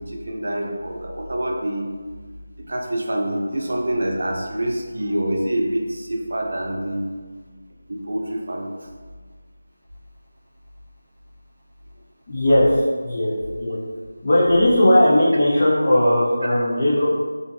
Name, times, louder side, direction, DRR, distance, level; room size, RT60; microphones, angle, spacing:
voice 1, 0.0-1.9 2.7-7.1 7.9-8.7, right 1 dB, 65° right, 1 dB, 0.5 m, -26 dB
voice 2, 12.3-13.8 14.2-17.1, left 1 dB, 35° left, -8 dB, 0.5 m, -18 dB
2.5 x 2.5 x 2.5 m, 1.5 s
figure-of-eight pair, 175°, 0 cm